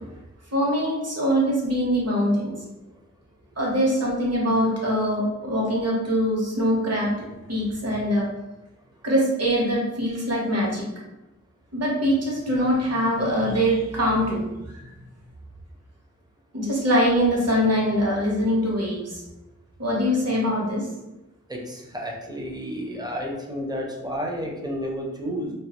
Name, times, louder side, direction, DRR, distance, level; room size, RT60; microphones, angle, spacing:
voice 1, 0.5-2.5 3.6-7.1 7.5-8.2 9.0-10.9 11.7-14.4 16.5-19.2 19.8-20.8, equal, 55° right, -4 dB, 0.9 m, -23 dB
voice 2, 21.5-25.5, equal, 15° right, -1 dB, 0.5 m, -31 dB
2.3 x 2.2 x 2.8 m, 0.99 s
wide cardioid pair, 70°, 31 cm